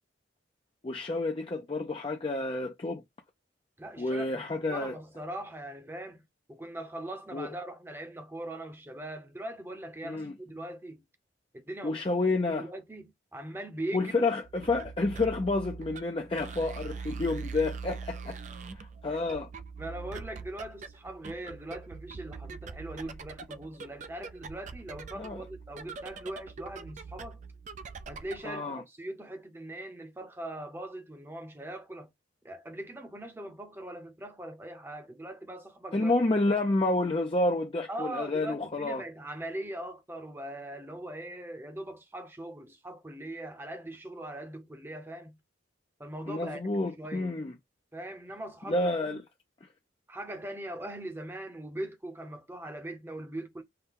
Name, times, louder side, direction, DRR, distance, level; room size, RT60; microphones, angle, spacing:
voice 1, 0.8-3.0 4.0-4.9 7.3-7.5 10.0-10.3 11.8-12.7 13.9-18.4 18.6-19.5 25.2-25.4 28.4-28.8 35.9-39.0 46.3-47.5 48.7-49.2, left 2 dB, 30° left, 0.5 m, -29 dB
voice 2, 3.8-6.2 6.5-11.0 11.5-12.0 12.5-14.2 19.1-19.2 19.8-27.4 28.1-32.1 32.4-36.2 37.9-45.4 46.0-46.6 47.0-47.3 47.9-49.2 50.1-53.6, right 1 dB, 10° right, 0.7 m, -41 dB
sound 1, 14.4-28.5, right 5 dB, 40° right, 0.4 m, -43 dB
5.7 x 2.2 x 3.6 m
head